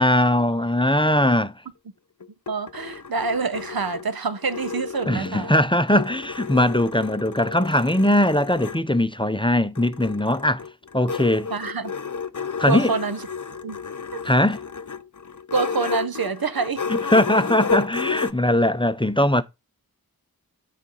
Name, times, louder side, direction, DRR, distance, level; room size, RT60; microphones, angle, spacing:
voice 1, 0.0-1.5 5.1-10.6 10.9-11.5 12.6-12.9 14.2-14.6 16.9-19.4, left 1 dB, 15° left, 0.6 m, -20 dB
sound 1, 2.2-5.5 5.9-8.8 9.8-18.3, left 5 dB, 55° left, 0.6 m, -32 dB
voice 2, 2.5-5.6 11.5-11.9 12.6-13.3 13.6-13.8 14.1-14.2 15.5-16.8 17.3-17.4, right 4 dB, 80° right, 0.7 m, -26 dB
9.0 x 4.1 x 5.5 m
wide cardioid pair, 40°, 36 cm